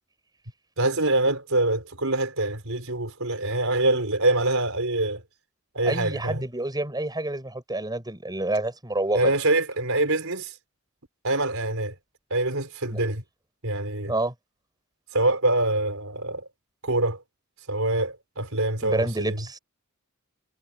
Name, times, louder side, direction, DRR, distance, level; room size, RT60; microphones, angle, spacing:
voice 1, 0.8-5.2 5.7-6.4 9.1-10.5 11.2-11.9 12.3-13.2 13.6-14.1 15.1-16.5 16.8-17.2 17.7-19.4, right 2 dB, 70° right, 6.2 m, -25 dB
voice 2, 5.8-9.3 12.9-13.0 14.1-14.3 18.8-19.6, right 2 dB, 20° right, 6.9 m, -28 dB
head